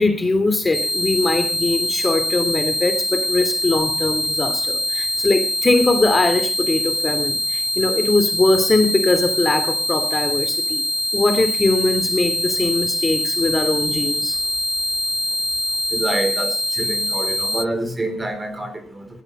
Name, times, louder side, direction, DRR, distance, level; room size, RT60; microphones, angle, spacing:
voice 1, 0.0-10.8 11.1-14.4, left 2 dB, 25° left, 7 dB, 2.7 m, -21 dB
sound 1, 0.7-17.6, left 1 dB, 5° left, 0.7 m, -23 dB
voice 2, 15.9-19.1, right 1 dB, 20° right, 8 dB, 4.4 m, -26 dB
17.0 x 12.0 x 5.5 m, 0.40 s
cardioid pair, 90°, 0 cm